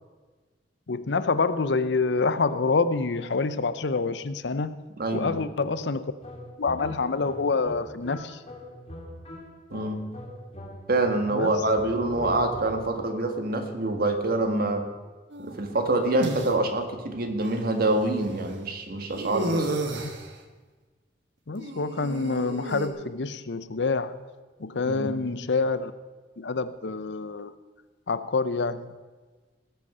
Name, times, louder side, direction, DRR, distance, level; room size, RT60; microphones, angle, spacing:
voice 1, 0.9-4.8 5.1-6.1 6.6-8.4 11.3-11.6 21.5-24.2 24.6-25.9 26.4-27.5 28.1-28.9, left 4 dB, 70° left, 14 dB, 0.7 m, -27 dB
voice 2, 5.0-5.5 9.7-10.1 10.9-14.9 15.4-19.8 24.8-25.2, right 2 dB, 55° right, 6 dB, 1.6 m, -26 dB
sound 1, 6.2-11.2 11.6-13.1, left 1 dB, 35° left, 2.6 m, -41 dB
sound 2, 15.3-16.5 17.4-17.5 19.2-20.3 21.6-22.9, right 1 dB, 75° right, 1.4 m, -32 dB
18.5 x 8.1 x 5.6 m, 1.3 s
head